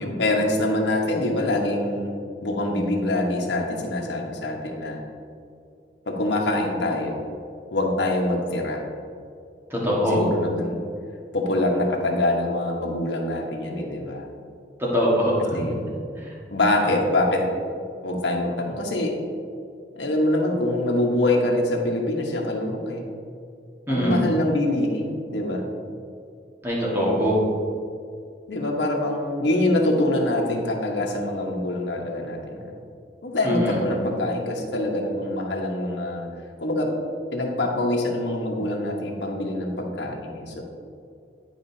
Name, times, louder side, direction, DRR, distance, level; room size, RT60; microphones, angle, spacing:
voice 1, 0.0-2.1 2.4-5.0 6.1-7.2 7.7-8.8 10.1-10.9 11.3-14.2 15.6-15.8 16.5-17.5 18.0-19.1 19.9-23.0 23.9-25.7 26.9-27.3 28.5-32.4 32.6-32.8 33.2-36.3 36.6-36.9 37.3-40.6, left 1 dB, 85° left, 0 dB, 1.1 m, -24 dB
voice 2, 9.7-10.2 14.8-15.6 23.9-24.2 26.6-27.3 33.4-33.8, equal, 15° right, -6 dB, 1.5 m, -22 dB
10.5 x 5.0 x 2.7 m, 2.4 s
head